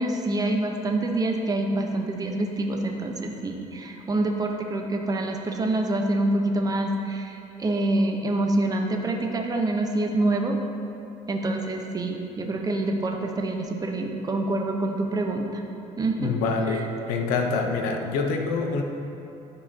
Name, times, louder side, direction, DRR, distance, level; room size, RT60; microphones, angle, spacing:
voice 1, 0.0-10.6 11.3-15.6 16.0-16.4 16.7-16.8, right 2 dB, 25° right, 2 dB, 0.9 m, -26 dB
voice 2, 16.2-18.8, left 4 dB, 90° left, 4 dB, 0.7 m, -26 dB
12.0 x 4.8 x 2.9 m, 2.8 s
cardioid pair, 90°, 14 cm